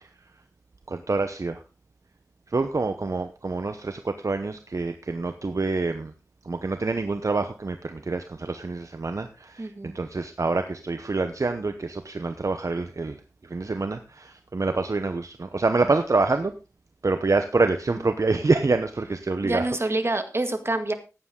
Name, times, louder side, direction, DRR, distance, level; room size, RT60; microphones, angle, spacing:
voice 1, 0.9-1.6 2.5-6.1 6.4-13.2 13.4-16.5 17.0-19.7, right 3 dB, 65° right, 8 dB, 0.9 m, -26 dB
voice 2, 9.6-10.0 17.9-18.1 19.4-20.9, right 2 dB, 45° right, 7 dB, 1.9 m, -27 dB
14.5 x 9.9 x 3.8 m, 0.31 s
wide cardioid pair, 65°, 6 cm